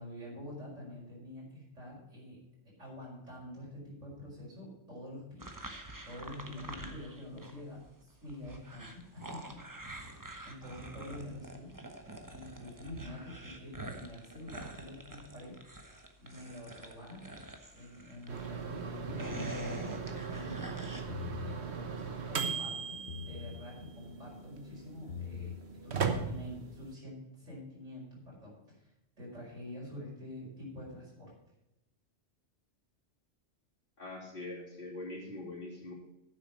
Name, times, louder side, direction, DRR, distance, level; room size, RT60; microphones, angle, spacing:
voice 1, 0.0-2.4 2.8-5.5 6.0-11.7 12.3-15.6 16.2-20.8 21.4-25.5 25.8-31.3, left 1 dB, 90° right, -5 dB, 5.5 m, -47 dB
sound 1, 5.4-7.6 7.9-18.5 18.9-21.0, right 1 dB, 15° right, 1.1 m, -46 dB
sound 2, 18.3-26.9, right 5 dB, 65° right, 1.4 m, -38 dB
sound 3, 19.1-19.6 21.0-21.6 23.1-23.6 25.0-25.6, left 7 dB, 70° left, 1.2 m, -42 dB
voice 2, 34.0-35.9, left 2 dB, 50° left, -7 dB, 3.3 m, -43 dB
9.8 x 7.6 x 6.3 m, 0.90 s
omnidirectional pair, 1.2 m